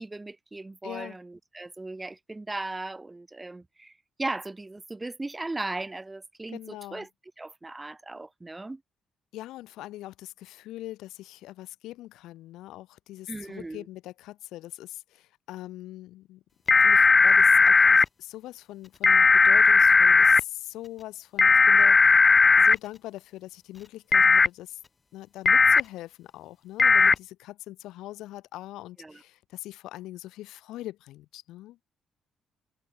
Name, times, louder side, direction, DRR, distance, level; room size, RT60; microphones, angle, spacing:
voice 1, 0.0-7.1 7.4-8.8 13.3-13.9 29.0-29.2, right 2 dB, 20° right, 2.0 m, -37 dB
voice 2, 0.8-1.2 6.5-7.1 9.3-16.4 16.8-22.3 22.6-24.8 25.1-31.8, left 15 dB, 85° left, 4.9 m, -42 dB
sound 1, 16.7-18.1 19.0-20.4 21.4-22.8 24.1-24.5 25.5-25.8 26.8-27.1, left 4 dB, 40° left, 0.4 m, -17 dB
supercardioid pair, 60°, 0 cm